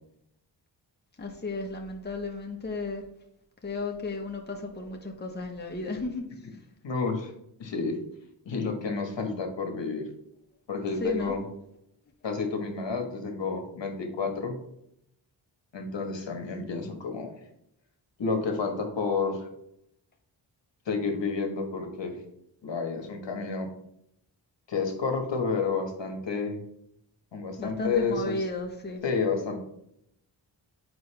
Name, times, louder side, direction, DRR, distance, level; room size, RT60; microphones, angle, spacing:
voice 1, 1.2-3.0 3.6-6.2 11.0-11.4 27.6-29.0, left 2 dB, 20° left, 1 dB, 1.1 m, -34 dB
voice 2, 6.8-7.3 7.6-8.0 8.4-10.1 10.7-11.4 12.2-14.6 15.7-17.3 18.2-19.5 20.9-22.2 22.6-23.7 24.7-26.6 27.3-28.3 29.0-29.6, left 4 dB, 70° left, 4 dB, 1.4 m, -30 dB
7.9 x 5.1 x 3.3 m, 0.76 s
wide cardioid pair, 95°, 46 cm